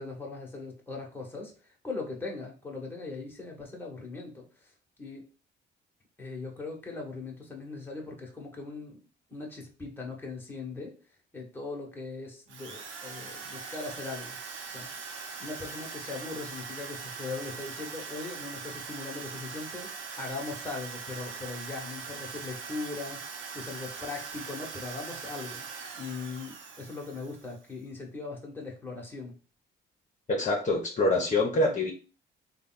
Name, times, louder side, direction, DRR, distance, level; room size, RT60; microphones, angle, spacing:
voice 1, 0.0-4.7 5.0-5.2 6.2-9.0 9.3-10.9 11.3-14.4 14.7-14.9 15.4-25.6 26.0-29.3, left 3 dB, 10° left, -1 dB, 1.3 m, -40 dB
Drill, 12.5-27.7, right 5 dB, 75° right, 0.8 m, -41 dB
voice 2, 30.3-31.9, left 2 dB, 40° left, 0 dB, 1.0 m, -25 dB
3.3 x 2.4 x 3.9 m, 0.35 s
cardioid pair, 90°, 20 cm